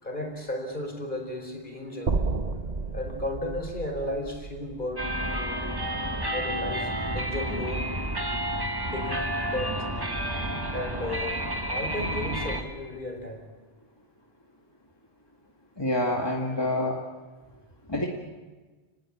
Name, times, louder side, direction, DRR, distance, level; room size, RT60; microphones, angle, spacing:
voice 1, 0.0-2.2 2.9-5.6 6.3-8.0 8.8-9.9 10.7-11.4 11.7-13.5, left 1 dB, 45° left, 4 dB, 4.8 m, -34 dB
sound 1, 2.1-6.2, right 3 dB, 40° right, 1.1 m, -32 dB
sound 2, 5.0-12.6, right 1 dB, 20° right, 2.1 m, -30 dB
voice 2, 15.8-17.0 17.9-18.1, left 1 dB, 20° left, -1 dB, 2.3 m, -27 dB
30.0 x 19.5 x 8.7 m, 1.3 s
omnidirectional pair, 1.1 m